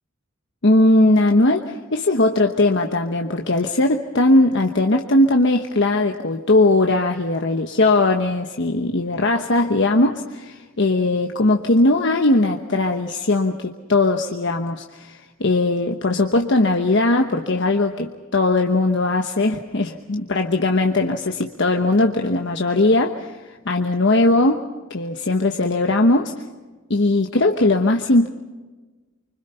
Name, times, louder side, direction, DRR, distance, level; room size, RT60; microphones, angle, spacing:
voice 1, 0.6-26.3 26.9-28.3, left 2 dB, 60° left, 4 dB, 1.1 m, -19 dB
25.5 x 25.0 x 5.6 m, 1.3 s
head